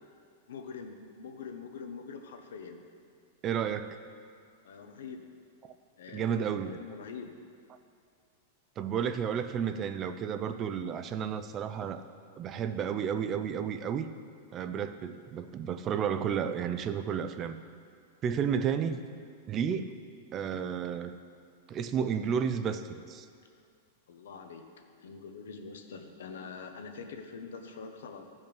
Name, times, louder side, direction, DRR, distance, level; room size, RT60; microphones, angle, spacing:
voice 1, 0.5-2.8 4.6-5.3 6.0-7.4 24.1-24.6 25.0-28.3, left 5 dB, 90° left, 5 dB, 1.0 m, -44 dB
voice 2, 3.4-4.0 6.1-6.8 8.8-12.0 12.4-14.1 14.5-17.6 18.2-19.0 19.5-19.9 20.3-21.2 21.7-23.3, right 7 dB, 25° right, 10 dB, 0.4 m, -32 dB
13.5 x 5.4 x 5.3 m, 2.2 s
supercardioid pair, 160°, 0 cm